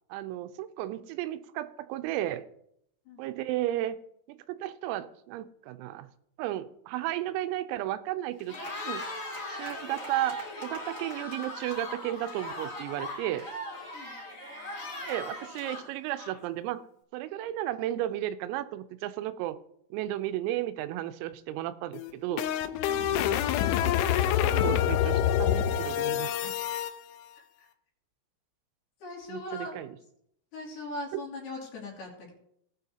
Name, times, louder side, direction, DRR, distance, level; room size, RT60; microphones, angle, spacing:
voice 1, 0.1-2.5 3.2-4.0 4.3-6.1 6.4-8.6 8.9-9.1 9.5-13.5 15.0-16.9 17.1-19.6 19.9-22.5 23.8-26.6 29.3-29.9 31.1-31.2, right 14 dB, 85° right, 11 dB, 3.3 m, -34 dB
Cheering, 8.4-16.6, left 1 dB, 30° left, 3.2 m, -39 dB
sound 1, 21.9-26.9, left 10 dB, 80° left, 2.8 m, -26 dB
voice 2, 27.4-27.7 29.0-29.8 30.5-32.3, left 2 dB, 55° left, -2 dB, 4.1 m, -40 dB
18.0 x 9.8 x 2.8 m, 0.72 s
omnidirectional pair, 6.0 m